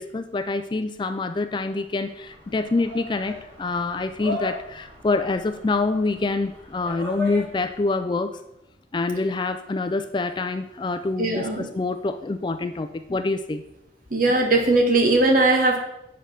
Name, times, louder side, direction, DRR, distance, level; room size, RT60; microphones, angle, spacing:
voice 1, 0.0-8.4 8.9-13.6, left 3 dB, 25° left, 10 dB, 0.3 m, -26 dB
sound 1, 1.6-7.9, left 2 dB, 80° right, 3.7 m, -37 dB
voice 2, 11.2-11.7 14.1-15.8, right 2 dB, 45° right, 3 dB, 1.4 m, -19 dB
7.9 x 5.0 x 5.8 m, 0.86 s
head